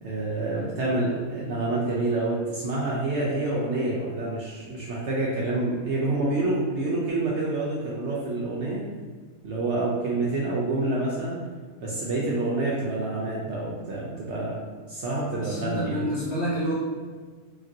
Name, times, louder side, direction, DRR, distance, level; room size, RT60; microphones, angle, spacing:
voice 1, 0.0-8.8 9.4-11.4 11.8-14.5 14.9-16.1, right 2 dB, 65° right, -5 dB, 0.7 m, -27 dB
voice 2, 15.4-16.8, equal, 65° left, -6 dB, 0.7 m, -28 dB
2.9 x 2.5 x 2.6 m, 1.5 s
omnidirectional pair, 1.6 m